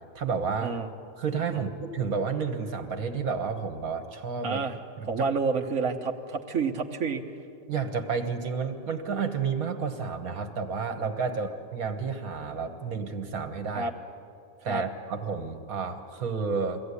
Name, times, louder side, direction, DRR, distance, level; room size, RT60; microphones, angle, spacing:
voice 1, 0.2-0.7 1.2-4.6 5.0-5.3 7.7-13.9 14.6-16.8, right 5 dB, 85° right, 6 dB, 1.8 m, -31 dB
voice 2, 4.4-4.8 5.1-7.2 13.7-13.9 14.6-14.8, right 4 dB, 65° right, 0 dB, 1.6 m, -29 dB
23.0 x 16.0 x 9.8 m, 2.4 s
omnidirectional pair, 1.5 m